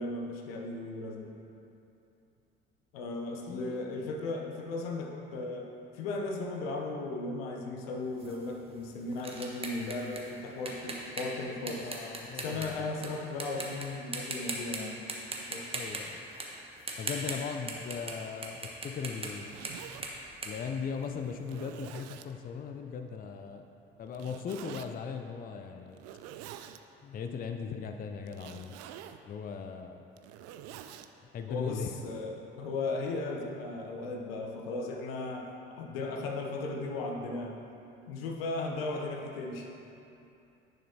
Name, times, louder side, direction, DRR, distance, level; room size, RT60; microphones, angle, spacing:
voice 1, 0.0-1.3 2.9-11.9 12.3-15.1 15.5-15.7 31.5-37.6 38.1-39.7, left 2 dB, 75° left, 1 dB, 0.8 m, -36 dB
sound 1, 8.2-13.1 13.4-13.8 14.1-14.8 15.1-18.2 18.4-21.4, right 2 dB, 20° right, 1.2 m, -39 dB
voice 2, 11.6-12.8 15.7-16.3 17.0-19.6 20.4-23.6 24.0-26.0 27.0-28.8 29.3-30.0 31.2-32.0, left 6 dB, 30° left, 5 dB, 0.5 m, -38 dB
Zipper (clothing), 19.3-20.0 20.7-20.8 21.4-22.3 24.1-24.9 25.9-26.8 28.3-29.2 30.0-31.1, right 11 dB, 55° right, 0.4 m, -46 dB
10.0 x 6.6 x 2.8 m, 2.8 s
figure-of-eight pair, 50°, 30 cm